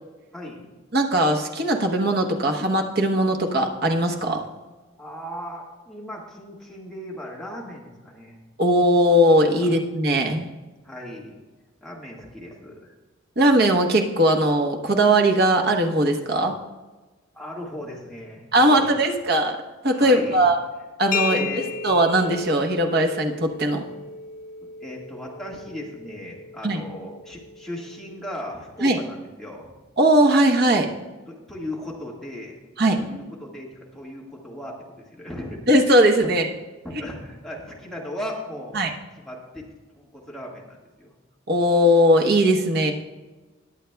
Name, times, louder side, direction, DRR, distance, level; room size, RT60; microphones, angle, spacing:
voice 1, 0.3-0.6 5.0-8.4 9.6-9.7 10.8-11.4 11.8-12.9 17.3-19.1 19.9-20.4 21.3-21.7 24.6-29.7 31.3-32.6 33.0-35.6 36.8-38.8 39.2-39.6 39.9-41.1, left 1 dB, ahead, -4 dB, 1.7 m, -37 dB
voice 2, 0.9-4.4 8.6-10.5 13.4-16.5 18.5-19.6 19.8-20.6 21.0-23.8 26.6-26.8 28.8-29.0 30.0-30.9 32.8-33.0 35.7-36.5 38.7-38.9 41.5-42.9, right 1 dB, 55° right, 2 dB, 1.1 m, -19 dB
sound 1, 21.1-28.7, left 5 dB, 45° left, 0.4 m, -35 dB
20.5 x 8.2 x 2.3 m, 1.2 s
head